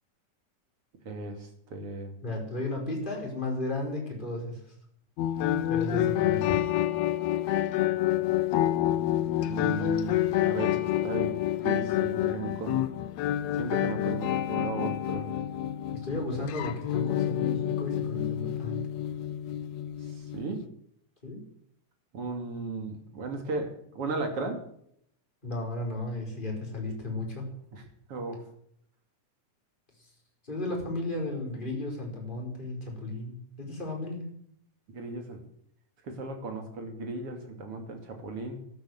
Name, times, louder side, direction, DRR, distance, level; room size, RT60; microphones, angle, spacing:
voice 1, 1.0-2.2 9.4-10.8 11.0-11.4 11.6-12.8 13.6-15.3 20.3-20.6 22.1-24.6 27.7-27.8 28.1-28.4 34.9-35.4 36.0-38.6, right 3 dB, 45° right, 5 dB, 3.4 m, -35 dB
voice 2, 2.2-4.7 5.7-6.6 15.9-18.9 21.2-21.4 25.4-27.5 30.0-30.1 30.4-34.3, left 2 dB, 15° left, 0 dB, 5.1 m, -34 dB
sound 1, 5.2-20.7, left 12 dB, 70° left, 1.7 m, -28 dB
13.0 x 12.5 x 8.0 m, 0.69 s
omnidirectional pair, 3.8 m